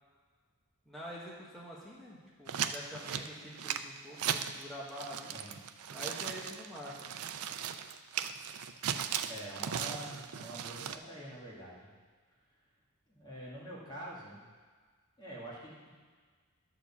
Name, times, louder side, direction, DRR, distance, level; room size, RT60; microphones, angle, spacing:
voice 1, 0.9-5.3 5.9-7.1, equal, ahead, -7 dB, 1.7 m, -46 dB
sound 1, 2.5-4.6 4.9-11.0, right 8 dB, 90° right, 0.5 m, -37 dB
voice 2, 9.2-11.9 13.1-14.4 15.2-15.9, right 1 dB, 20° left, -7 dB, 2.3 m, -46 dB
11.5 x 4.6 x 7.3 m, 1.5 s
head